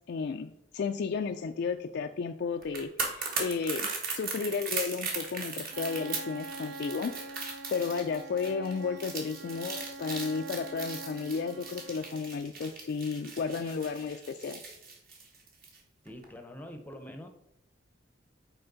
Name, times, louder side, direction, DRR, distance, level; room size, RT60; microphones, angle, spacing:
voice 1, 0.1-7.1 7.7-14.6, left 5 dB, 60° left, 6 dB, 0.3 m, -33 dB
sound 1, 2.6-15.8 16.1-16.2, right 4 dB, 50° right, 1.3 m, -38 dB
Bowed string instrument, 5.7-12.4, right 3 dB, 85° right, 0.5 m, -44 dB
voice 2, 16.0-17.3, left 1 dB, 10° left, 6 dB, 0.6 m, -44 dB
7.9 x 4.3 x 3.9 m, 0.83 s
head